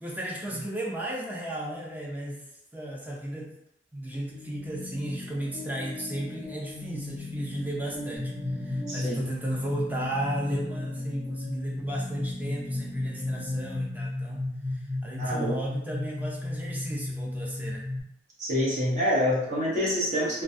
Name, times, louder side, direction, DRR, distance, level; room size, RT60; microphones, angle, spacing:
voice 1, 0.0-2.4 2.7-3.5 3.9-14.4 15.0-17.8, right 1 dB, 10° right, -3 dB, 0.4 m, -34 dB
sound 1, 4.1-14.1, left 2 dB, 30° left, 0.6 m, -41 dB
sound 2, 8.2-18.0, left 2 dB, 85° right, 1.0 m, -33 dB
voice 2, 8.9-9.2 15.2-15.6 18.4-20.4, equal, 40° right, -6 dB, 0.8 m, -26 dB
2.2 x 2.2 x 2.6 m, 0.80 s
head